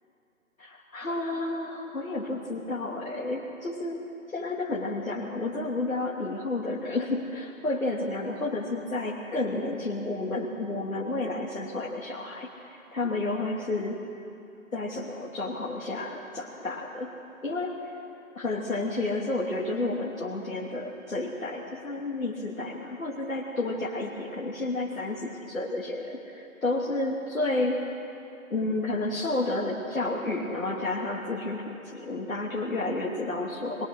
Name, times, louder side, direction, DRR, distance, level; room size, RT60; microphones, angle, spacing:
voice 1, 0.6-4.0 4.3-14.0 14.7-17.2 17.4-17.9 18.3-27.9 28.5-33.9, left 2 dB, 75° left, -5 dB, 2.9 m, -31 dB
22.0 x 22.0 x 6.4 m, 2.8 s
figure-of-eight pair, 140°, 41 cm